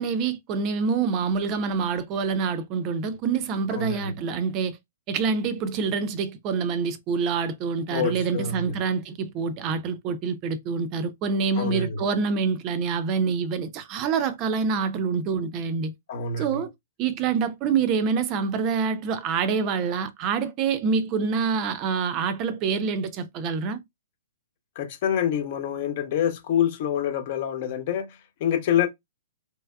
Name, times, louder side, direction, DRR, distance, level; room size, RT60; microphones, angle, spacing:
voice 1, 0.0-4.8 5.1-15.9 16.4-16.7 17.0-23.8, right 5 dB, 30° right, 0.5 m, -26 dB
voice 2, 3.7-4.1 7.9-8.8 11.6-12.0 16.1-16.6 24.7-28.9, left 8 dB, 45° left, 0.9 m, -26 dB
3.3 x 3.2 x 2.2 m
figure-of-eight pair, 120°, 0 cm